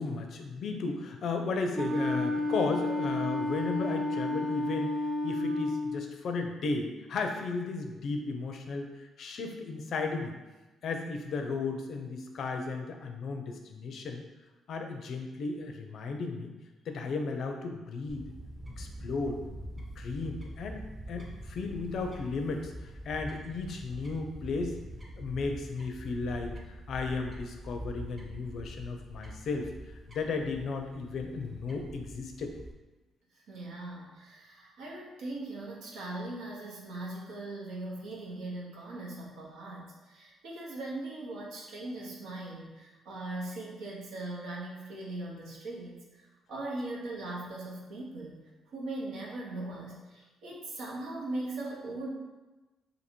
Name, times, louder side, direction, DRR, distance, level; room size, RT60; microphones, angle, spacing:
voice 1, 0.0-4.9 5.2-10.3 10.8-14.2 14.7-16.5 16.9-18.3 18.8-19.4 19.8-22.7 23.1-24.7 25.2-26.5 26.9-29.7 30.1-32.5, left 4 dB, 65° left, 4 dB, 0.5 m, -34 dB
Wind instrument woodwind instrument, 1.7-6.0, left 1 dB, 55° right, 0.4 m, -31 dB
Fowl / Bird, 18.1-32.7, right 1 dB, 20° right, 0.7 m, -44 dB
voice 2, 33.5-46.2 46.5-48.4 48.7-52.1, right 2 dB, 85° right, -3 dB, 0.8 m, -40 dB
2.7 x 2.7 x 4.3 m, 1.1 s
cardioid pair, 90°, 0 cm